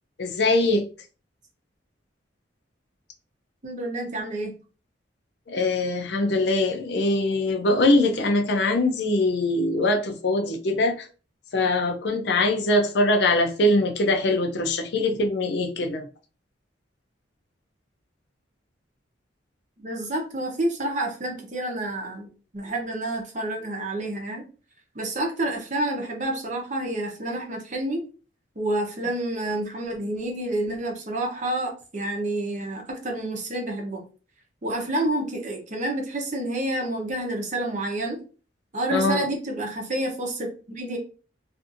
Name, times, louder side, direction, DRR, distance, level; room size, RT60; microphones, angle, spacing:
voice 1, 0.2-0.9 5.5-11.1 11.5-16.1 38.9-39.2, left 2 dB, 60° left, 0.5 m, -22 dB
voice 2, 3.6-4.5 19.8-24.5 24.9-28.0 28.6-34.0 34.6-38.2 38.7-41.0, right 1 dB, 40° right, 0.7 m, -29 dB
2.6 x 2.5 x 2.5 m
head